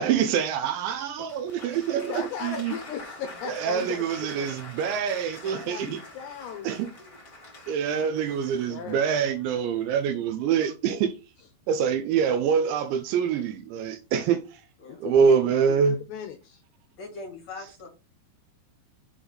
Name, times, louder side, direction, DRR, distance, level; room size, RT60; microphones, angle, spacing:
voice 1, 0.0-2.1 2.4-2.7 3.6-6.0 6.6-6.9 7.7-11.1 11.7-14.5 15.0-16.0, right 7 dB, 80° right, 2.8 m, -25 dB
Applause, 1.2-10.1, left 2 dB, 25° left, 1.8 m, -46 dB
voice 2, 2.1-4.5 5.4-6.8 7.6-8.2 8.7-9.1 11.4-11.5 14.9-16.6, left 8 dB, 75° left, 2.6 m, -38 dB
voice 3, 16.9-17.9, left 3 dB, 45° left, 2.8 m, -40 dB
7.9 x 4.0 x 4.8 m
omnidirectional pair, 5.6 m